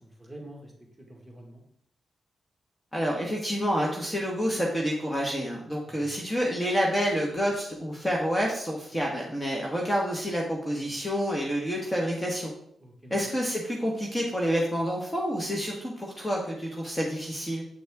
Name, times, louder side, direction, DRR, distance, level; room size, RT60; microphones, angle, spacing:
voice 1, 0.0-1.6 5.8-6.1 12.8-13.2, right 1 dB, 5° right, 0 dB, 1.7 m, -47 dB
voice 2, 2.9-12.5 13.1-17.6, equal, 15° left, -2 dB, 1.3 m, -28 dB
7.8 x 4.2 x 3.5 m, 0.68 s
cardioid pair, 80°, 0 cm